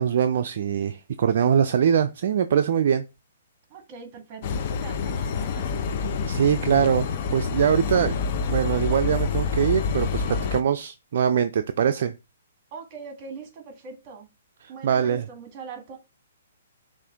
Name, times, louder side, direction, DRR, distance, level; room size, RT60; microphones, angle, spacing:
voice 1, 0.0-3.0 6.3-8.2 8.5-12.1 14.8-15.3, right 8 dB, 60° right, 0.4 m, -23 dB
voice 2, 3.7-5.8 12.7-14.3 14.7-16.0, right 5 dB, 35° right, 1.5 m, -41 dB
sound 1, 4.4-10.6, left 5 dB, 50° left, 0.6 m, -27 dB
6.0 x 2.5 x 3.4 m
hypercardioid pair, 140°, 0 cm